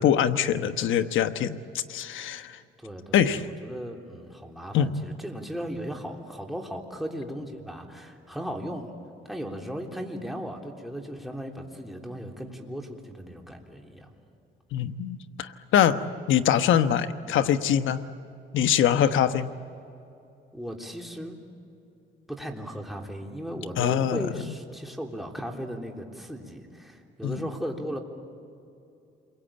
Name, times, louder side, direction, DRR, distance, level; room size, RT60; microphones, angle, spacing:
voice 1, 0.0-1.6 1.9-2.6 3.1-3.4 4.7-5.0 14.7-16.0 16.3-18.0 18.5-19.5 23.8-24.3 27.2-27.4, left 9 dB, 80° left, 10 dB, 1.1 m, -23 dB
voice 2, 2.8-8.9 9.2-14.1 17.3-17.4 20.5-21.4 22.3-28.0, equal, ahead, 1 dB, 3.4 m, -36 dB
29.0 x 22.5 x 8.8 m, 2.7 s
cardioid pair, 90°, 20 cm